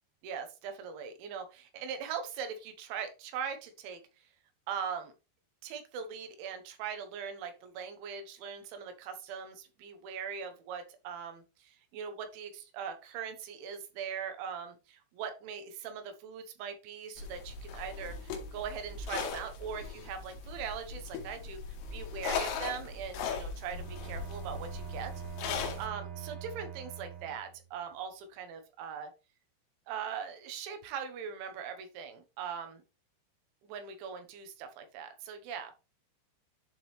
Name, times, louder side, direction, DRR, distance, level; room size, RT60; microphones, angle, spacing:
voice 1, 0.2-4.0 4.7-5.1 5.6-21.6 21.9-25.1 25.8-29.1 29.9-32.8 33.7-35.7, right 7 dB, 75° right, 7 dB, 3.2 m, -41 dB
sound 1, 17.2-25.9, left 5 dB, 75° left, 3.5 m, -39 dB
Bowed string instrument, 23.7-27.7, right 9 dB, 50° right, 3.1 m, -43 dB
11.0 x 3.8 x 3.2 m, 0.30 s
omnidirectional pair, 5.9 m